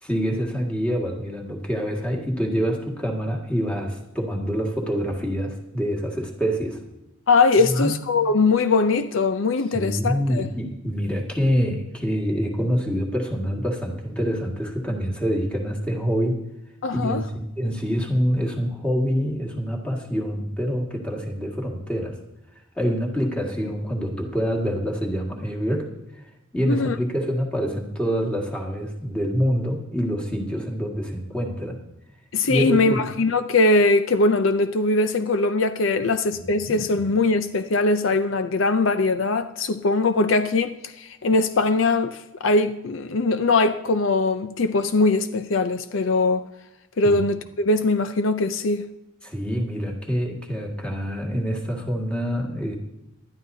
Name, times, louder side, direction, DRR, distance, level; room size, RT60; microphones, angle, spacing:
voice 1, 0.0-6.8 7.6-8.0 9.7-16.4 16.9-22.2 22.8-25.9 26.1-31.8 32.4-33.0 36.3-37.1 47.0-47.2 49.2-52.8, equal, 5° left, 2.0 m, -26 dB
voice 2, 7.3-10.5 16.8-17.2 26.7-26.9 32.3-46.4 47.0-48.8, left 3 dB, 70° left, 0.6 m, -21 dB
19.0 x 12.0 x 2.8 m
head